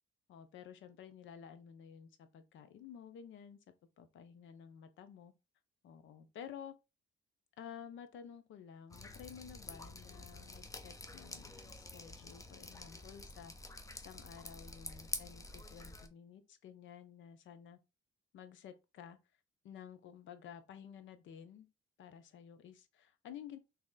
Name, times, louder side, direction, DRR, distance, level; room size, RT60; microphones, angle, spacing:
voice 1, 0.3-3.6 4.0-5.3 5.8-6.7 7.6-13.5 13.9-17.8 18.3-19.2 19.6-21.7 22.0-23.6, left 8 dB, 75° left, 0.6 m, -52 dB
Drip, 8.9-16.1, left 2 dB, 15° left, 0.5 m, -48 dB
3.1 x 2.8 x 3.7 m
cardioid pair, 90°, 20 cm